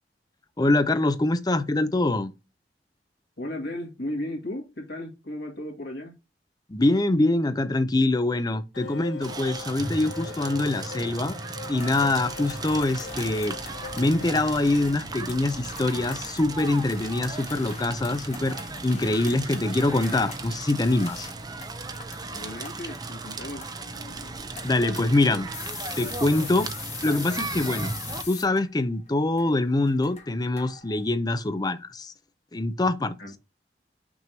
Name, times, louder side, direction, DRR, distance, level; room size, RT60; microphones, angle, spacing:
voice 1, 0.6-2.3 6.7-11.3 11.7-13.6 14.0-18.6 18.8-21.3 24.6-25.5 26.0-26.7 27.0-27.9 28.3-32.1 32.5-33.1, left 2 dB, 25° left, 0.5 m, -24 dB
voice 2, 3.4-6.1 22.3-23.7 25.3-25.4 33.2-33.3, left 1 dB, 65° left, 2.1 m, -35 dB
sound 1, 8.7-14.5, left 5 dB, 80° left, 0.7 m, -41 dB
Crackle, 9.2-28.2, right 3 dB, 25° right, 0.6 m, -36 dB
sound 2, 11.8-31.0, left 5 dB, 40° left, 1.4 m, -43 dB
6.1 x 3.0 x 5.2 m
head